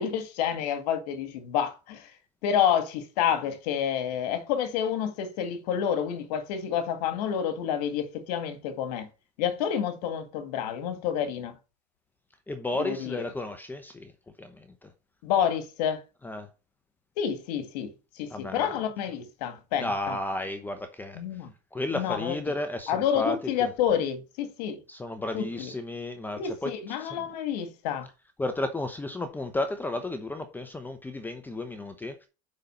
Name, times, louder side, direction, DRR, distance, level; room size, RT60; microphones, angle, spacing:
voice 1, 0.0-9.1 9.4-11.6 12.7-13.2 15.2-16.0 17.2-20.2 21.1-21.5 21.9-22.5 22.9-24.8 25.3-25.7 26.4-28.1, left 8 dB, 70° left, 1.9 m, -29 dB
voice 2, 12.5-14.1 14.4-14.9 16.2-16.5 18.3-18.7 19.8-21.2 21.7-23.7 24.9-26.7 27.0-27.2 28.4-32.3, left 2 dB, 10° left, 0.8 m, -33 dB
6.5 x 5.7 x 6.7 m
supercardioid pair, 135°, 21 cm